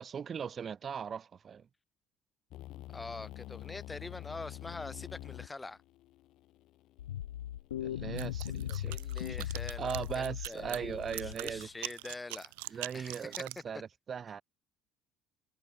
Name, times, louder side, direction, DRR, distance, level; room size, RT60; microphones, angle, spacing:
voice 1, 0.0-1.7 7.8-8.9 9.3-9.5 9.8-11.7 12.7-14.4, right 7 dB, 40° right, 5.1 m, -39 dB
sound 1, 2.5-8.4, left 16 dB, 55° left, 2.2 m, -48 dB
voice 2, 2.9-5.8 8.7-13.4, left 3 dB, 15° left, 4.2 m, -45 dB
sound 2, 7.0-11.7, left 12 dB, 75° left, 1.6 m, -39 dB
sound 3, 8.2-13.6, right 26 dB, 70° right, 5.2 m, -43 dB
figure-of-eight pair, 55°, 0 cm